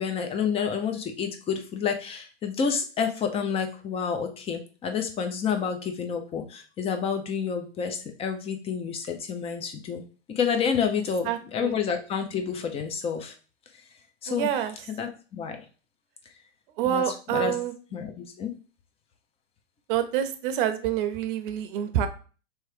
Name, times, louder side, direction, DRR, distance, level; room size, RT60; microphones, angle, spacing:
voice 1, 0.0-10.0 10.3-13.3 14.2-14.6 14.9-15.6 16.8-17.5 17.9-18.5, left 6 dB, 15° left, 5 dB, 0.6 m, -29 dB
voice 2, 11.3-11.8 14.3-14.7 16.8-17.7 19.9-22.1, right 10 dB, 45° right, 9 dB, 0.8 m, -27 dB
3.4 x 3.1 x 4.8 m, 0.37 s
hypercardioid pair, 130°, 36 cm